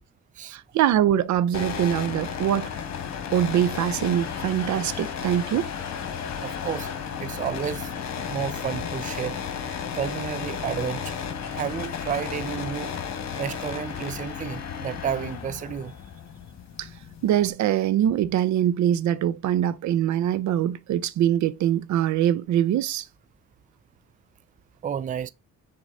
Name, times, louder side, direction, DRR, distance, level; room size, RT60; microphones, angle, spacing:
voice 1, 0.5-2.7 3.3-5.7 16.8-16.9 17.2-23.1, right 11 dB, 70° right, 0.6 m, -23 dB
sound 1, 1.5-17.5, left 7 dB, 60° left, 1.4 m, -33 dB
voice 2, 6.4-6.9 7.2-7.9 8.3-9.4 9.9-12.9 13.4-15.9 24.8-25.3, right 8 dB, 25° right, 0.4 m, -31 dB
6.4 x 3.9 x 3.9 m
cardioid pair, 90°, 30 cm